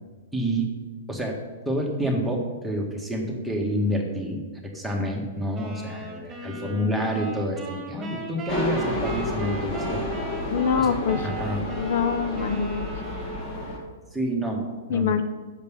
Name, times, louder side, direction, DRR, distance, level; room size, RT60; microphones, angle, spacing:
voice 1, 0.3-0.8 1.1-1.4 1.6-10.0 10.8-10.9 11.2-11.6 14.1-15.1, equal, ahead, -2 dB, 1.6 m, -28 dB
sound 1, 5.5-13.9, right 2 dB, 20° right, 1.9 m, -38 dB
sound 2, 8.5-13.8, left 1 dB, 35° left, 2.2 m, -30 dB
voice 2, 10.5-11.3 11.8-12.8 14.9-15.2, left 6 dB, 60° left, 9 dB, 0.5 m, -24 dB
7.1 x 5.2 x 7.0 m, 1.4 s
hypercardioid pair, 115°, 0 cm